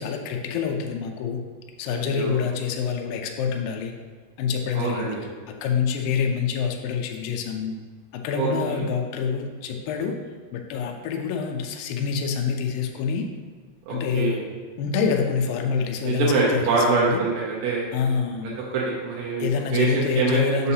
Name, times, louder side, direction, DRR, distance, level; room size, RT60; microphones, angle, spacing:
voice 1, 0.0-1.4 1.8-3.9 4.4-5.2 5.6-7.7 8.1-10.2 10.5-13.3 13.9-14.4 14.8-17.2 17.9-18.6 19.4-20.7, left 6 dB, 85° left, 3 dB, 2.0 m, -26 dB
voice 2, 1.9-2.4 4.8-5.2 8.3-8.9 13.9-14.4 16.0-17.9 18.7-20.7, right 4 dB, 85° right, -5 dB, 3.1 m, -25 dB
6.9 x 5.5 x 2.8 m, 1.5 s
omnidirectional pair, 4.7 m